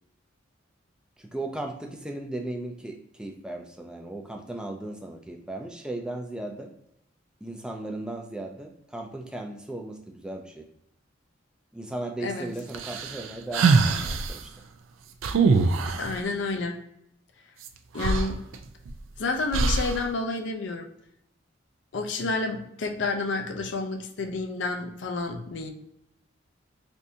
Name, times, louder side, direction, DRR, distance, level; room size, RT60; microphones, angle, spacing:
voice 1, 1.2-6.7 7.4-10.6 11.7-14.5, right 1 dB, 5° right, 2 dB, 0.4 m, -36 dB
sound 1, 12.7-14.4 15.2-16.1 17.6-17.7 18.0-19.0 19.5-20.0, right 4 dB, 80° right, 0.4 m, -23 dB
voice 2, 16.0-16.8 17.9-18.4 19.2-20.9 21.9-25.7, left 3 dB, 65° left, 4 dB, 0.5 m, -30 dB
3.5 x 2.6 x 2.7 m, 0.77 s
head